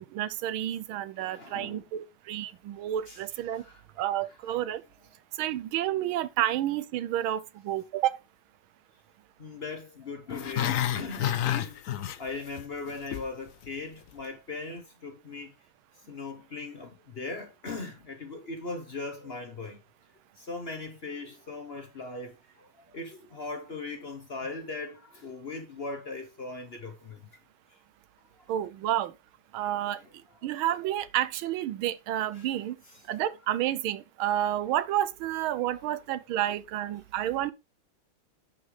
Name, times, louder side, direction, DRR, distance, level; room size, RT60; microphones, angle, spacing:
voice 1, 0.0-3.6 4.0-4.8 5.4-8.1 28.5-29.1 29.5-30.0 30.4-32.8 33.1-37.5, right 12 dB, 85° right, 1.5 m, -30 dB
voice 2, 1.2-1.9 3.1-3.2 3.5-4.1 9.4-11.8 12.2-15.5 16.1-19.8 20.4-27.2 32.3-32.5 32.9-33.0 35.6-35.7, left 3 dB, 40° left, 1.0 m, -39 dB
Growling, 10.3-12.6 12.9-13.3 13.6-13.7, left 11 dB, 80° left, 0.7 m, -29 dB
10.0 x 6.4 x 3.3 m
omnidirectional pair, 2.2 m